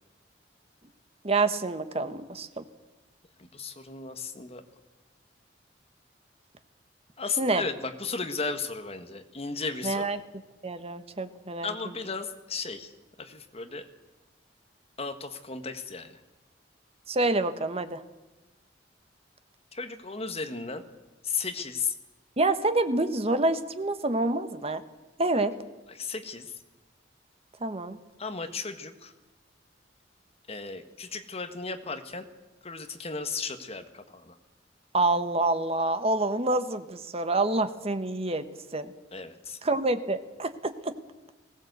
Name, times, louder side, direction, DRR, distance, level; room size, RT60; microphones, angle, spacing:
voice 1, 1.2-2.6 7.4-7.6 9.8-10.2 10.6-11.7 17.1-18.0 22.4-24.8 25.2-25.6 27.6-28.0 34.9-38.5 38.7-38.9 39.6-40.9, right 2 dB, 35° right, 10 dB, 1.2 m, -27 dB
voice 2, 3.5-4.6 7.2-10.1 11.6-12.9 13.2-13.9 15.0-16.1 19.7-20.8 21.2-21.9 25.9-26.5 28.2-29.1 30.5-32.2 32.6-34.3 39.1-39.6, left 4 dB, 35° left, 7 dB, 1.5 m, -35 dB
19.5 x 17.5 x 8.0 m, 1.1 s
head